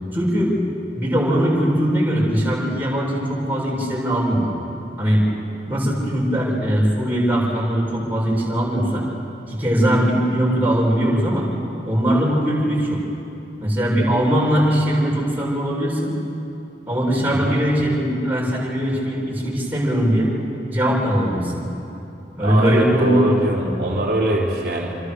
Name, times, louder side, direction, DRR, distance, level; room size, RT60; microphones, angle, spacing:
voice 1, 0.1-0.5 0.9-4.5 5.0-5.2 5.7-9.0 9.5-11.5 11.9-13.0 13.6-16.1 16.9-20.3 20.7-21.6 22.3-23.2 23.6-23.7, equal, 10° right, -5 dB, 6.9 m, -20 dB
voice 2, 22.4-24.9, right 1 dB, 60° right, -3 dB, 3.2 m, -22 dB
27.5 x 26.0 x 6.6 m, 2.7 s
head